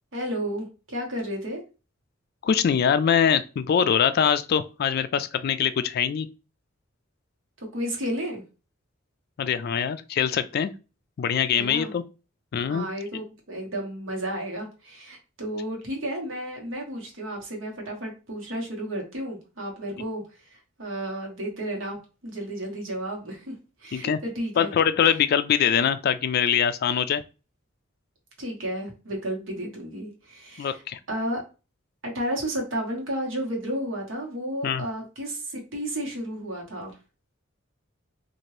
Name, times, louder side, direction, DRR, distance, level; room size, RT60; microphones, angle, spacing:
voice 1, 0.1-1.6 7.7-8.4 11.6-11.9 12.7-20.2 20.5-23.5 23.8-24.7 28.4-30.8 31.1-31.4 32.0-37.0, right 1 dB, 70° right, 1.2 m, -32 dB
voice 2, 2.4-6.3 9.4-10.7 11.2-12.0 12.5-12.9 23.9-24.2 24.6-27.2 30.6-31.0 34.6-34.9, left 8 dB, 50° left, 0.3 m, -23 dB
2.8 x 2.5 x 3.1 m
head